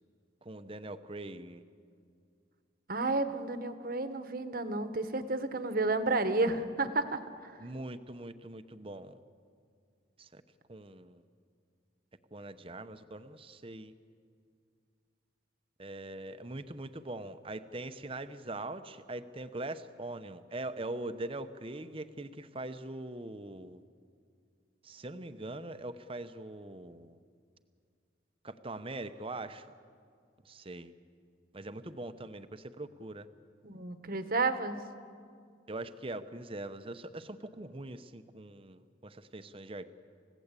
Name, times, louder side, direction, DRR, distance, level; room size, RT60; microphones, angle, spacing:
voice 1, 0.4-1.6 7.6-9.2 10.2-10.4 10.7-11.2 12.3-13.9 15.8-23.8 24.8-27.2 28.4-29.7 30.4-30.9 31.5-33.3 35.7-39.9, right 2 dB, 30° right, 11 dB, 0.8 m, -42 dB
voice 2, 2.9-7.5 33.6-34.8, right 3 dB, 50° right, 10 dB, 1.2 m, -31 dB
29.0 x 16.5 x 8.3 m, 2.3 s
head